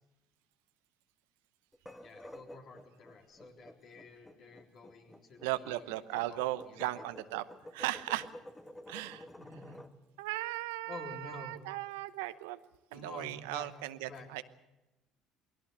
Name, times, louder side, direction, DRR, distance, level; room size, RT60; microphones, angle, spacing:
sound 1, 1.7-9.9, left 1 dB, 10° left, 1.7 m, -51 dB
voice 1, 2.0-6.9 7.2-7.3 9.4-9.8 10.9-11.6 12.9-13.7 14.0-14.3, left 3 dB, 55° left, 2 dB, 3.8 m, -50 dB
voice 2, 5.4-7.4 7.7-8.3 8.9-9.3 10.2-12.6 12.9-14.4, right 17 dB, 80° right, 13 dB, 0.8 m, -37 dB
20.0 x 17.0 x 8.0 m, 1.0 s
hypercardioid pair, 70°, 0 cm